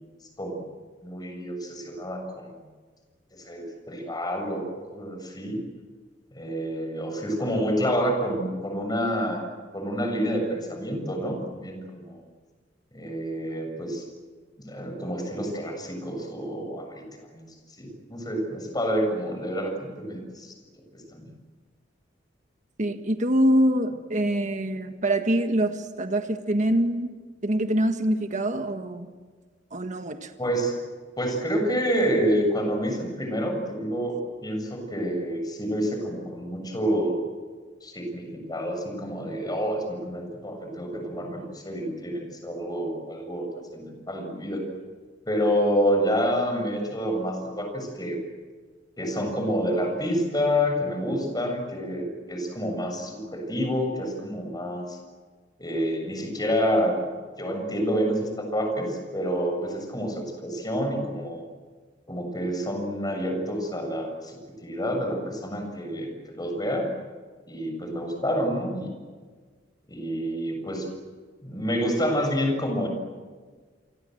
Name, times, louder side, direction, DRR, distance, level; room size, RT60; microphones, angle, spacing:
voice 1, 1.0-2.5 3.3-5.6 6.3-9.5 9.7-12.2 12.9-14.0 14.6-17.0 17.3-20.5 21.1-21.3 30.4-30.8 31.2-34.2 34.4-37.2 37.8-44.6 45.3-48.2 49.0-55.0 55.6-57.0 57.4-61.5 62.1-66.9 67.5-68.9 69.9-70.9 71.4-72.9, equal, 20° left, 4 dB, 7.0 m, -28 dB
voice 2, 22.8-27.1 27.4-29.1 29.7-30.3, right 1 dB, 40° right, 7 dB, 1.6 m, -24 dB
29.5 x 24.5 x 7.9 m, 1.5 s
head